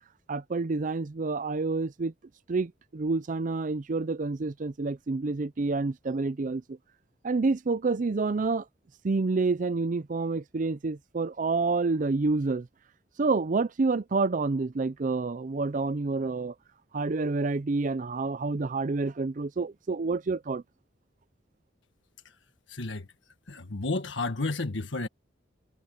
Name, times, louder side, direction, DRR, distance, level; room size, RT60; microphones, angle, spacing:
voice 1, 0.3-2.1 2.5-6.8 7.2-8.7 9.0-12.7 13.2-16.5 16.9-20.6, right 3 dB, 45° right, 0.5 m, -28 dB
voice 2, 22.7-23.1 23.5-25.1, left 2 dB, 90° left, 1.6 m, -32 dB
head